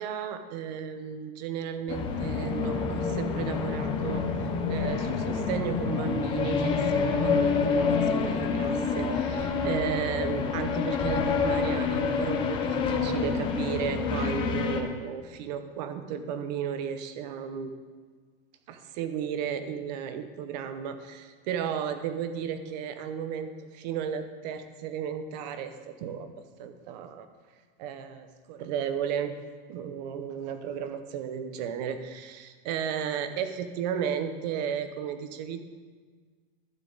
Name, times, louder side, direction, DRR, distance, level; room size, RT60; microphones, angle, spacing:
voice 1, 0.0-4.3 4.7-17.7 18.7-26.3 26.6-27.3 27.8-29.3 29.7-35.6, right 8 dB, 45° right, 9 dB, 0.8 m, -34 dB
sound 1, 1.9-14.8, left 5 dB, 15° left, 0.5 m, -27 dB
12.0 x 9.2 x 3.9 m, 1.5 s
supercardioid pair, 170°, 29 cm